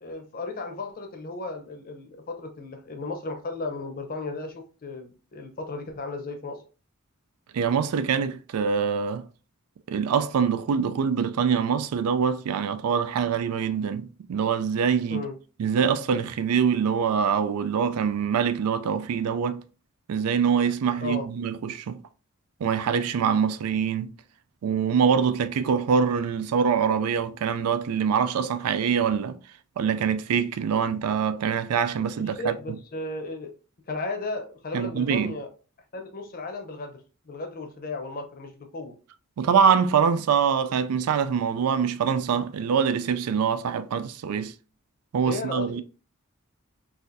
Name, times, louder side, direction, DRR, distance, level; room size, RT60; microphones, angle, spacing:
voice 1, 0.0-6.6 15.1-15.3 21.0-21.3 32.2-33.5 33.9-35.5 35.9-37.0 37.3-38.9 45.2-45.8, left 2 dB, 40° left, 0.7 m, -35 dB
voice 2, 7.5-9.2 9.9-15.2 15.6-19.6 20.1-22.0 22.6-24.1 24.6-29.4 29.8-32.5 34.7-35.3 39.4-44.5 45.1-45.8, right 7 dB, 85° right, 0.4 m, -24 dB
4.0 x 2.5 x 2.6 m
head